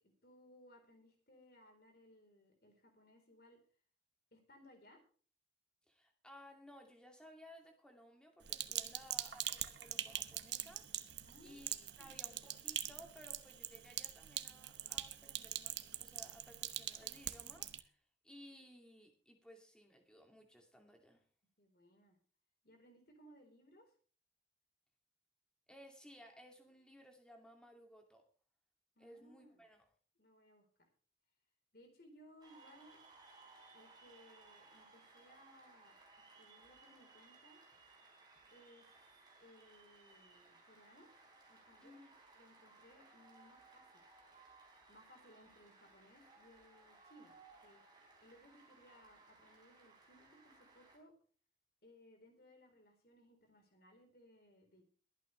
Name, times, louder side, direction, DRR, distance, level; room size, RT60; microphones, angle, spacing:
voice 1, 0.2-3.6 4.3-5.0 11.2-12.3 21.6-22.2 22.6-23.9 29.0-29.6 30.2-30.7 31.7-33.0 33.7-37.6 38.5-38.9 39.4-41.1 41.5-42.0 42.3-44.0 44.9-47.3 47.6-47.8 48.2-51.1 51.8-54.9, equal, 55° left, 4 dB, 4.2 m, -63 dB
voice 2, 5.9-21.2 25.7-28.2 29.0-29.8 41.8-42.1, equal, 5° left, 2 dB, 2.5 m, -59 dB
Sink (filling or washing), 8.5-17.8, right 12 dB, 70° right, 1.0 m, -43 dB
Cheering / Applause, 32.4-51.0, right 3 dB, 25° right, 4.4 m, -63 dB
22.5 x 9.2 x 3.3 m, 0.41 s
head